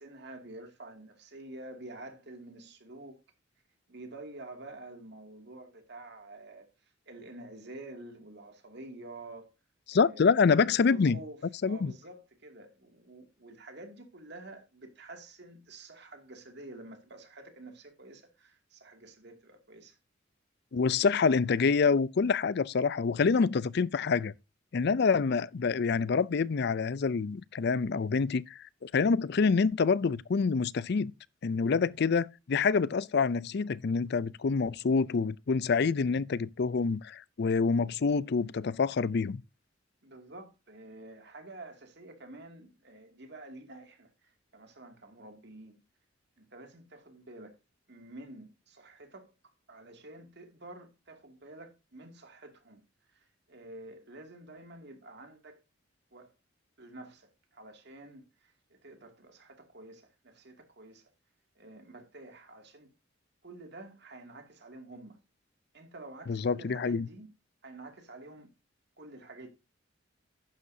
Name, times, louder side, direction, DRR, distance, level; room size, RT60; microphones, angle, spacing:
voice 1, 0.0-3.2 3.9-6.7 7.1-9.5 9.9-11.4 11.7-20.0 40.0-45.8 46.4-47.6 47.9-49.3 49.7-52.8 53.1-55.6 56.1-56.3 56.8-61.0 61.6-62.9 63.4-65.2 65.7-67.3 67.6-68.5 69.0-69.5, right 2 dB, 60° right, 2.4 m, -49 dB
voice 2, 9.9-11.2 11.6-11.9 20.7-24.3 24.7-31.1 31.4-39.4 66.3-67.1, left 5 dB, 55° left, 0.4 m, -27 dB
11.5 x 9.6 x 2.7 m
head